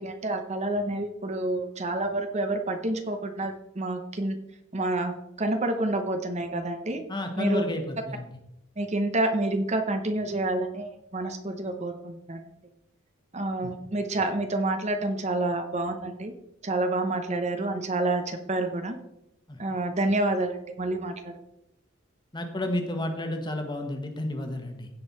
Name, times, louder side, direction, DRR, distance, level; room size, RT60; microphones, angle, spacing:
voice 1, 0.0-4.4 4.7-7.0 7.4-7.6 8.8-12.4 13.3-16.3 16.6-19.0 19.6-21.3, right 2 dB, 35° right, 6 dB, 0.8 m, -28 dB
voice 2, 7.1-8.3 13.6-13.7 19.5-19.6 22.3-24.9, left 1 dB, 20° left, 5 dB, 1.3 m, -31 dB
16.0 x 5.4 x 4.2 m, 0.84 s
head